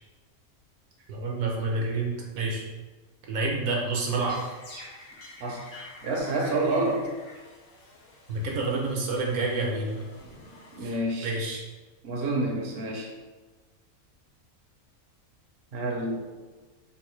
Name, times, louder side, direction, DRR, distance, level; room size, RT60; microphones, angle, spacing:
voice 1, 1.1-2.6 3.3-4.4 8.3-10.0 10.8-11.0 11.2-11.6, right 3 dB, 75° right, -1 dB, 1.1 m, -28 dB
sound 1, 3.9-11.2, left 1 dB, 65° left, 1.1 m, -47 dB
voice 2, 5.4-7.1 10.7-11.4 12.0-13.1 15.7-16.2, right 2 dB, 55° right, -1 dB, 0.8 m, -28 dB
3.9 x 2.5 x 3.0 m, 1.3 s
omnidirectional pair, 1.5 m